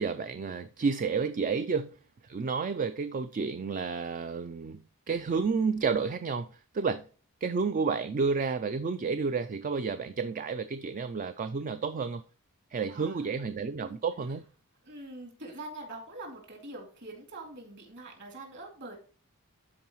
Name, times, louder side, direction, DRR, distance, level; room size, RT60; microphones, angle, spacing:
voice 1, 0.0-2.0 2.2-6.5 6.7-7.0 7.4-12.2 12.7-14.4, right 5 dB, 35° right, 0.4 m, -31 dB
voice 2, 12.9-13.3 13.8-14.0 14.8-19.0, right 2 dB, 50° right, 3.0 m, -44 dB
12.5 x 4.7 x 3.1 m
head